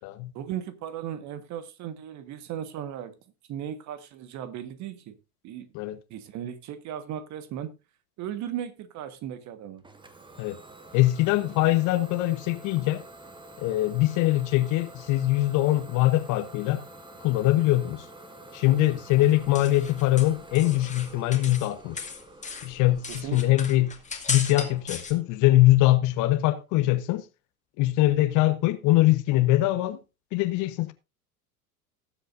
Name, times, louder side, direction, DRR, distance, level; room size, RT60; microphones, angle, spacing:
voice 1, 0.3-3.2 3.5-5.2 5.4-5.7 6.1-7.7 8.2-9.8 18.7-18.9 23.1-23.6, right 10 dB, 40° right, 1.5 m, -36 dB
Idling / Domestic sounds home sounds, 9.8-25.4, right 2 dB, 10° right, 1.5 m, -48 dB
voice 2, 10.9-13.0 13.6-16.8 17.2-18.1 18.5-22.1 22.6-23.9 24.3-27.2 27.8-30.0 30.3-30.9, left 16 dB, 40° left, 1.2 m, -22 dB
sound 1, 19.2-21.7 22.0-25.1, left 5 dB, 15° left, 2.2 m, -36 dB
18.5 x 7.9 x 2.6 m
figure-of-eight pair, 80°, 44 cm